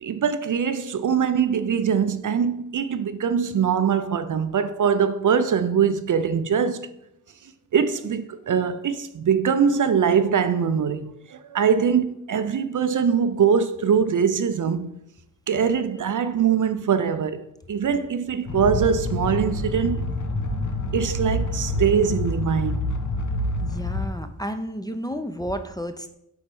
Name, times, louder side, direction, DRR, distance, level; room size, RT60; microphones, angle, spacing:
voice 1, 0.0-6.9 7.7-14.9 15.5-20.1 20.9-23.0, right 7 dB, 55° right, 0.5 m, -22 dB
sound 1, 18.5-24.1, left 1 dB, 50° left, 1.0 m, -27 dB
voice 2, 23.6-26.1, equal, 10° left, 0.5 m, -31 dB
4.3 x 4.2 x 5.3 m
cardioid pair, 50°, 38 cm